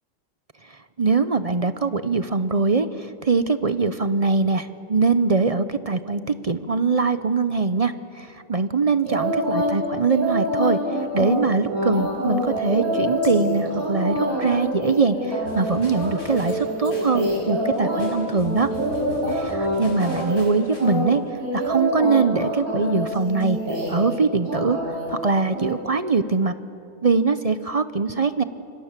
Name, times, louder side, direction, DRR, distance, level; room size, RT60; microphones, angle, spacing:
voice 1, 1.0-10.8 11.1-18.7 19.3-21.2 21.5-23.6 23.9-24.8 25.1-26.5 27.0-28.4, right 4 dB, 35° right, 12 dB, 0.6 m, -22 dB
sound 1, 9.1-9.8 10.1-18.1 18.4-19.8 20.0-20.5 20.8-24.2 24.5-25.1 25.5-25.7, equal, 90° right, 7.2 m, -26 dB
sound 2, 15.5-20.8, left 1 dB, 55° left, 6.7 m, -41 dB
26.5 x 25.0 x 7.4 m, 2.7 s
omnidirectional pair, 1.5 m